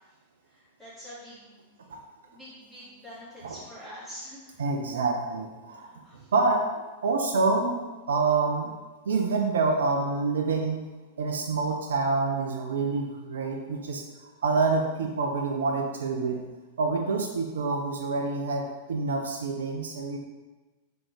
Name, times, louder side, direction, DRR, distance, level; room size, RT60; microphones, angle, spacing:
voice 1, 0.5-1.7 2.2-4.6 5.6-6.3, equal, 5° left, -11 dB, 1.3 m, -46 dB
voice 2, 4.6-5.9 6.3-6.8 7.0-8.7 9.1-10.9 11.2-14.0 14.4-16.4 16.8-20.2, right 3 dB, 65° right, 2 dB, 0.3 m, -27 dB
3.6 x 2.9 x 3.5 m, 1.2 s
figure-of-eight pair, 95°, 0 cm